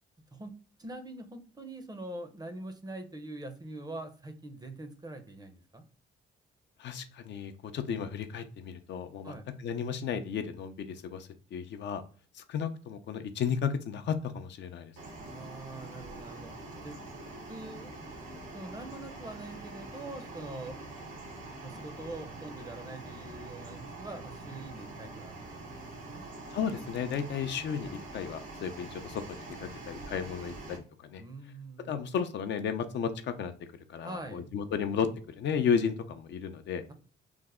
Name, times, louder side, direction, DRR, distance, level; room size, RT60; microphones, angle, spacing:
voice 1, 0.3-5.9 9.2-9.4 15.3-16.5 16.8-17.0 17.5-18.1 18.5-20.8 21.6-26.3 31.2-32.1 34.0-34.5, right 2 dB, 20° right, 8 dB, 0.5 m, -44 dB
voice 2, 6.8-9.3 9.6-12.0 12.3-14.9 26.5-31.2 31.9-33.5 33.9-35.1 35.4-36.8, left 7 dB, 65° left, 8 dB, 0.5 m, -33 dB
sound 1, 15.0-30.8, right 2 dB, 85° right, 1.1 m, -44 dB
3.3 x 2.0 x 3.5 m, 0.41 s
cardioid pair, 90°, 20 cm